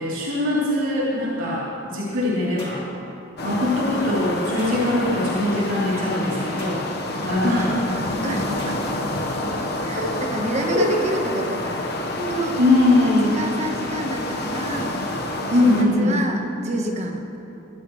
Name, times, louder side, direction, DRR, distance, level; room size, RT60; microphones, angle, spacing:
voice 1, 0.0-2.8 3.4-6.8 7.2-7.7 9.9-10.1 10.7-10.9 12.1-13.3 15.5-16.2, left 2 dB, 70° right, -8 dB, 3.5 m, -21 dB
sound 1, 2.6-2.9 4.6-4.8 6.6-6.9 8.6-8.8, left 2 dB, 25° left, 2.6 m, -40 dB
sound 2, 3.4-15.8, left 1 dB, 50° left, 1.4 m, -28 dB
voice 2, 7.6-9.0 9.8-11.8 12.3-12.6 13.0-15.0 15.6-17.3, right 1 dB, 35° right, 2 dB, 1.3 m, -29 dB
22.5 x 14.0 x 3.3 m, 2.8 s
head